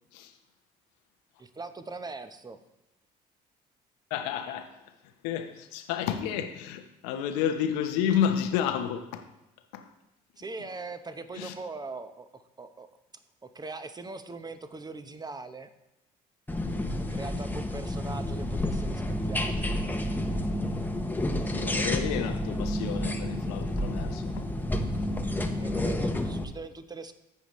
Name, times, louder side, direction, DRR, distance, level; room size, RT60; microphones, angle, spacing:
voice 1, 1.4-2.6 10.4-12.9 13.4-15.7 17.1-19.7 25.5-27.1, right 3 dB, 20° right, 0.9 m, -41 dB
voice 2, 4.1-4.8 5.0-9.3 9.7-9.9 11.3-11.6 21.5-24.5, left 9 dB, 80° left, 0.9 m, -31 dB
sound 1, 16.5-26.4, left 1 dB, 10° left, 1.0 m, -30 dB
15.0 x 5.1 x 3.1 m
hypercardioid pair, 60°, 21 cm